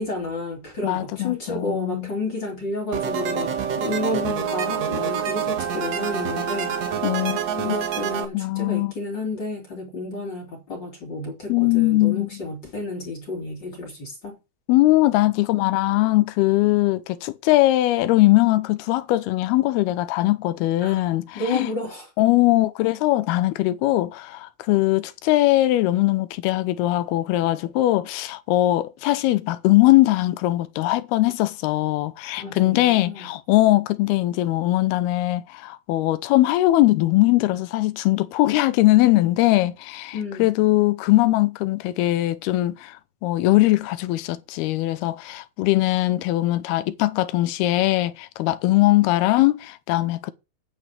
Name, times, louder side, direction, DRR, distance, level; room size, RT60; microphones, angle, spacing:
voice 1, 0.0-6.8 7.6-14.4 20.8-21.0 21.3-22.1 32.4-33.3 40.1-40.5, left 2 dB, 30° left, 3.3 m, -31 dB
voice 2, 0.8-2.1 7.0-7.8 8.3-8.9 11.5-12.3 14.7-21.7 22.2-43.0 43.2-50.3, left 17 dB, 85° left, 2.7 m, -20 dB
sound 1, 2.9-8.3, right 8 dB, 55° right, 2.0 m, -26 dB
9.4 x 5.4 x 7.4 m
omnidirectional pair, 4.5 m